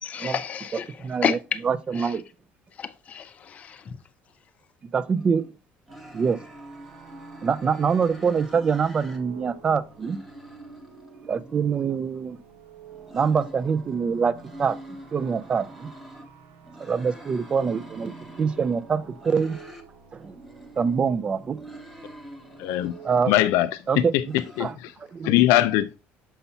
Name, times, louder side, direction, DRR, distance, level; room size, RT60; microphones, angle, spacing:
voice 1, 0.0-1.0 1.2-1.6 2.0-2.1 2.8-4.0, left 8 dB, 30° left, 0.5 m, -30 dB
voice 2, 1.0-1.4 1.6-2.2 4.9-5.4 6.1-6.4 7.4-10.2 11.3-12.4 13.1-14.8 15.1-15.9 16.8-18.1 18.4-19.6 20.1-20.4 20.8-21.6 23.0-23.3 23.9-24.1 24.6-24.7 25.1-25.3, right 6 dB, 20° right, 0.3 m, -24 dB
sound 1, 5.1-5.5 5.9-9.2 9.5-12.1 12.8-16.3 16.6-19.9 20.2-23.5 24.0-24.7, equal, ahead, 0.8 m, -46 dB
sound 2, 5.9-23.1, right 7 dB, 80° right, 1.0 m, -49 dB
voice 3, 22.6-22.9 23.3-24.9 25.2-26.0, left 14 dB, 90° left, 0.4 m, -22 dB
6.8 x 5.6 x 2.7 m
cardioid pair, 170°, 5 cm